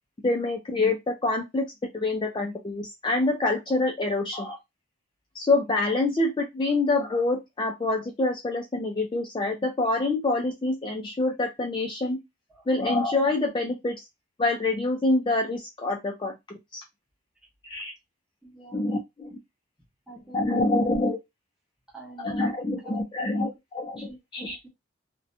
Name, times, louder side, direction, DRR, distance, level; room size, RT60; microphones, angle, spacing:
voice 1, 0.2-1.7 1.9-4.6 5.3-12.2 12.7-14.0 14.4-16.8 17.6-17.9 18.7-19.4 20.3-21.2 22.2-24.6, left 2 dB, 25° left, 2 dB, 0.3 m, -26 dB
voice 2, 18.4-18.9 20.1-20.7 21.9-22.5 22.8-23.0 23.4-23.5 24.0-24.7, right 2 dB, 5° right, -4 dB, 0.8 m, -46 dB
2.7 x 2.1 x 2.5 m, 0.19 s
head